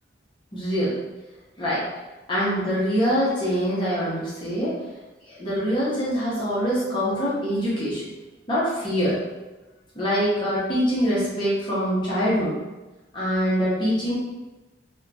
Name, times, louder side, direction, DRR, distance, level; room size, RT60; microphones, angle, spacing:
voice 1, 0.5-1.0 1.6-1.8 2.3-4.8 5.2-8.0 8.5-9.2 9.9-12.6 13.1-14.2, equal, 25° left, -8 dB, 0.7 m, -24 dB
2.8 x 2.1 x 2.6 m, 1.1 s
head